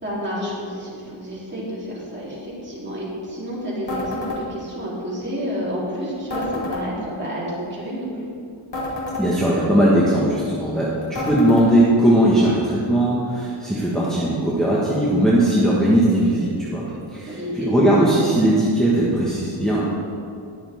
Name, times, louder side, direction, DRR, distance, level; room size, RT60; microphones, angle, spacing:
voice 1, 0.0-8.3 17.3-17.7, equal, 20° right, -7 dB, 3.3 m, -30 dB
sound 1, 3.9-4.4 6.3-6.8 8.7-9.3 11.1-11.7, left 2 dB, 55° left, 2.8 m, -28 dB
voice 2, 9.2-16.8 17.1-19.8, right 1 dB, ahead, -8 dB, 1.6 m, -19 dB
20.5 x 7.1 x 3.6 m, 2.4 s
wide cardioid pair, 160°, 50 cm